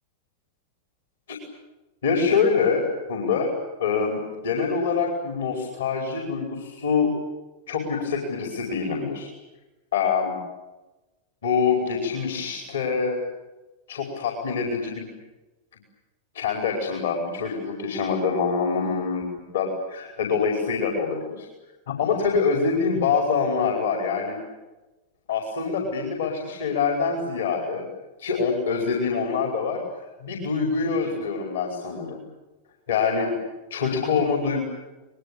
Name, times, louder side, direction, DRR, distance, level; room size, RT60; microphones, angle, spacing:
voice 1, 2.0-3.5 3.8-7.1 7.7-9.3 9.9-10.4 11.4-13.2 13.9-15.1 16.3-19.3 19.5-21.5 21.9-24.4 25.3-27.9 28.2-29.8 30.2-32.2 32.9-33.3 33.7-34.7, left 5 dB, 65° left, 2 dB, 5.1 m, -25 dB
28.0 x 21.5 x 8.7 m, 1.1 s
figure-of-eight pair, 90°, 0 cm